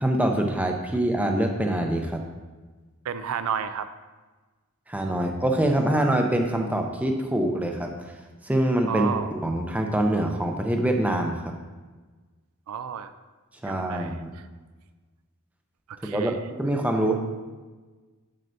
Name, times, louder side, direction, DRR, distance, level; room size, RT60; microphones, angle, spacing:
voice 1, 0.0-2.2 4.9-7.9 8.4-9.1 9.3-11.5 13.6-14.3 16.1-17.2, right 1 dB, 5° right, 3 dB, 0.5 m, -24 dB
voice 2, 3.0-3.9 8.9-9.4 12.7-13.1 13.6-14.4 16.0-16.4, right 7 dB, 75° right, 11 dB, 0.3 m, -31 dB
7.5 x 6.6 x 2.7 m, 1.3 s
head